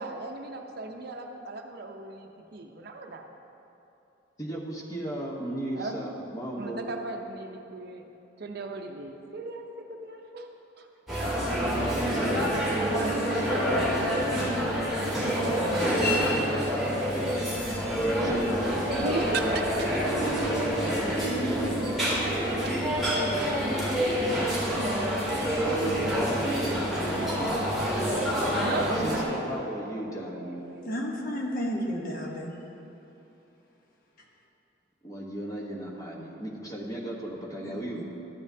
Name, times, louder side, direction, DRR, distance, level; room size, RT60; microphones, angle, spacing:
voice 1, 0.0-3.2 5.8-6.0 6.5-8.0 8.4-10.5 10.8-10.9 12.9-13.8 14.2-15.2 16.8-16.9 19.0-20.3 22.2-23.4 24.9-26.2 28.6-30.9, right 2 dB, 55° right, 4 dB, 0.6 m, -37 dB
voice 2, 4.4-6.8 11.7-12.5 15.7-16.2 16.9-20.0 20.9-21.7 26.0-27.4 28.7-30.6 35.0-38.0, right 1 dB, 20° left, -2 dB, 1.1 m, -36 dB
sound 1, 11.1-29.2, equal, ahead, 1.8 m, -27 dB
voice 3, 30.8-32.6 37.6-38.0, equal, 45° left, -1 dB, 1.0 m, -32 dB
12.5 x 8.5 x 2.7 m, 2.9 s
head